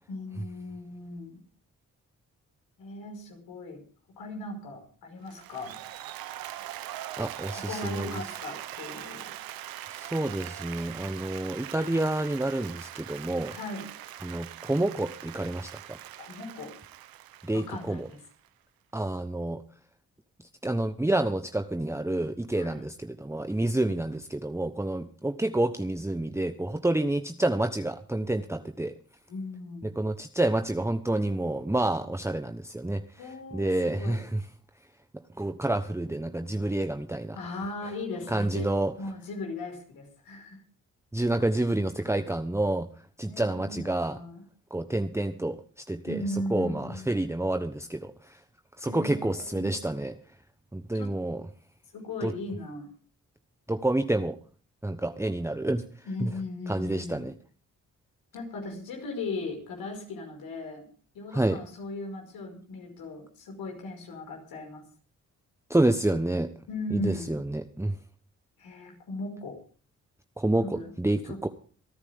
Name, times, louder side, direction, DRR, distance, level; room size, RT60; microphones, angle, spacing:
voice 1, 0.1-1.4 2.8-3.8 4.2-5.8 7.5-9.3 13.5-13.9 16.2-16.7 17.5-18.2 22.5-22.8 29.3-30.0 33.2-33.7 34.0-34.2 37.3-38.7 39.0-40.6 43.3-44.4 46.1-47.1 48.9-49.8 50.9-51.1 51.9-52.9 56.0-57.3 58.3-60.8 61.1-64.8 66.7-67.4 68.6-69.6 70.5-70.9 71.3-71.4, left 2 dB, 85° left, 2 dB, 5.5 m, -37 dB
Applause, 5.3-18.5, right 13 dB, 80° right, 0.9 m, -42 dB
voice 2, 7.2-8.2 9.9-13.6 14.2-16.0 17.4-18.1 18.9-19.6 20.6-28.9 29.8-34.4 35.4-37.4 38.3-38.9 41.1-42.9 43.2-44.2 44.7-46.2 46.5-48.4 48.8-50.2 50.7-51.4 52.2-52.3 53.7-54.4 54.8-55.8 56.2-56.3 56.7-57.3 61.3-61.6 65.7-66.5 66.9-68.0 70.4-71.5, right 1 dB, 10° right, 7 dB, 1.1 m, -28 dB
26.0 x 9.8 x 3.6 m, 0.40 s
supercardioid pair, 50°, 35 cm